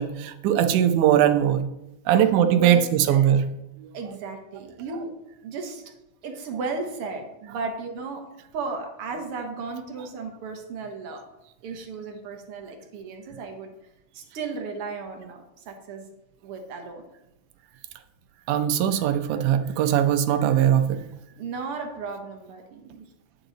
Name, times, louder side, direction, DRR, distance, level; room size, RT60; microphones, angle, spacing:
voice 1, 0.0-1.6 2.1-3.4 4.1-4.2 4.9-5.0 6.5-6.7 9.7-10.1 18.5-21.0, right 10 dB, 85° right, 9 dB, 2.2 m, -21 dB
voice 2, 2.2-3.3 3.9-5.1 5.4-5.8 6.2-8.3 8.5-11.3 11.6-13.7 14.1-16.0 16.4-17.0 21.4-23.0, right 4 dB, 60° right, 4 dB, 1.7 m, -35 dB
10.0 x 6.9 x 3.9 m, 0.89 s
omnidirectional pair, 3.5 m